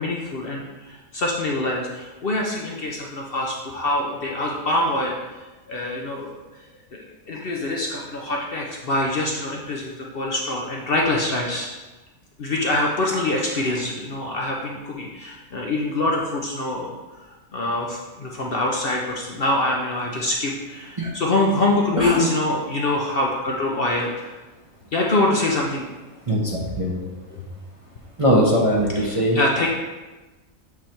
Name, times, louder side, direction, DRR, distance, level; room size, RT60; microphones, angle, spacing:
voice 1, 0.0-5.2 5.7-6.4 6.9-11.7 12.4-17.0 17.5-24.3 24.9-25.9 27.3-27.5 29.0-29.7, left 2 dB, 50° left, -1 dB, 0.8 m, -25 dB
voice 2, 22.0-22.3 26.3-26.9 28.2-29.4, equal, 30° right, -4 dB, 0.8 m, -20 dB
8.2 x 3.3 x 4.4 m, 1.2 s
omnidirectional pair, 1.4 m